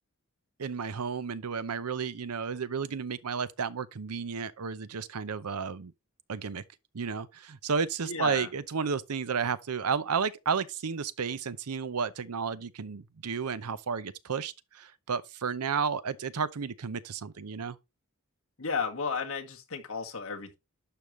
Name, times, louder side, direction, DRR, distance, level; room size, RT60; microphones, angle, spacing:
voice 1, 0.6-5.9 6.3-6.6 6.9-17.8, right 6 dB, 90° right, 0.7 m, -32 dB
voice 2, 8.0-8.5 18.6-20.6, left 5 dB, 70° left, 1.9 m, -33 dB
11.5 x 5.4 x 3.2 m
head